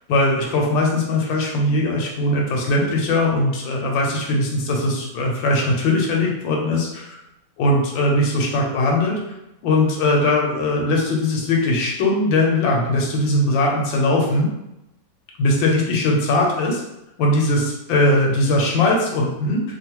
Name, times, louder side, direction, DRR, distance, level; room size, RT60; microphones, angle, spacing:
voice 1, 0.1-7.2 7.6-9.2 9.6-14.5 15.4-16.8 17.2-19.6, left 2 dB, 80° left, -1 dB, 1.4 m, -20 dB
3.5 x 2.2 x 2.9 m, 0.88 s
omnidirectional pair, 2.1 m